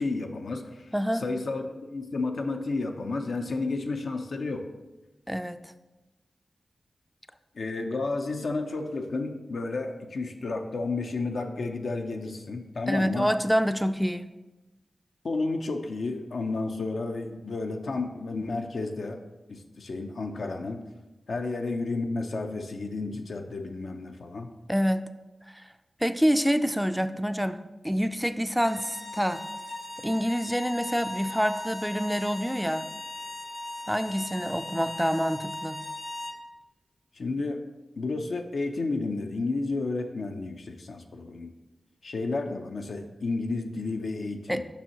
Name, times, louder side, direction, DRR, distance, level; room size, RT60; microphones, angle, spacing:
voice 1, 0.0-0.9 1.1-4.7 7.6-13.3 15.2-19.2 19.5-20.8 21.3-24.5 37.2-37.6 38.0-41.5 42.0-44.6, left 3 dB, 75° left, 4 dB, 0.5 m, -31 dB
voice 2, 0.9-1.2 5.3-5.7 12.9-14.3 24.7-25.0 25.5-25.6 26.0-27.6 27.8-29.4 30.0-32.9 33.9-35.8 44.5-44.6, equal, 5° right, 10 dB, 0.3 m, -27 dB
sound 1, 28.5-36.4, left 1 dB, 50° left, 0.9 m, -39 dB
6.9 x 5.5 x 2.9 m, 1.1 s
cardioid pair, 40°, 0 cm